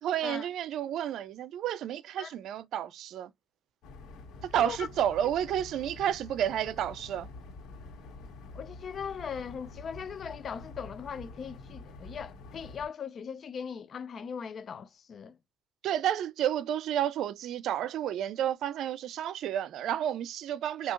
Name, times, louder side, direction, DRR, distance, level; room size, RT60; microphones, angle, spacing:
voice 1, 0.0-3.3 4.4-7.3 15.8-20.9, right 10 dB, 80° right, 0.5 m, -31 dB
sound 1, 3.8-12.9, left 3 dB, 85° left, 1.7 m, -47 dB
voice 2, 8.5-15.4, left 7 dB, 55° left, 0.4 m, -39 dB
5.5 x 2.8 x 2.4 m
cardioid pair, 90°, 0 cm